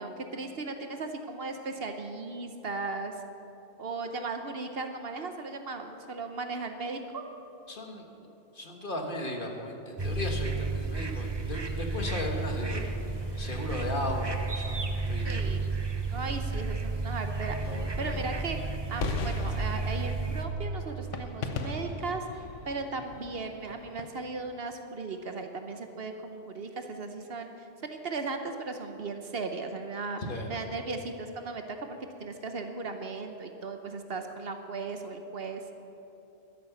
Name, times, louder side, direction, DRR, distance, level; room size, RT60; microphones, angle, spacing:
voice 1, 0.0-3.2 3.8-7.2 15.2-15.7 16.1-30.2 30.5-35.7, right 3 dB, 55° right, 6 dB, 1.0 m, -37 dB
voice 2, 7.7-8.3 8.5-12.9 13.4-15.4 16.1-16.4 30.2-30.5, left 1 dB, 45° left, 2 dB, 1.6 m, -36 dB
sound 1, 10.0-20.5, right 3 dB, 25° right, 0.8 m, -32 dB
sound 2, 12.0-24.1, left 4 dB, 80° left, 1.2 m, -40 dB
12.5 x 11.0 x 7.0 m, 2.9 s
omnidirectional pair, 1.2 m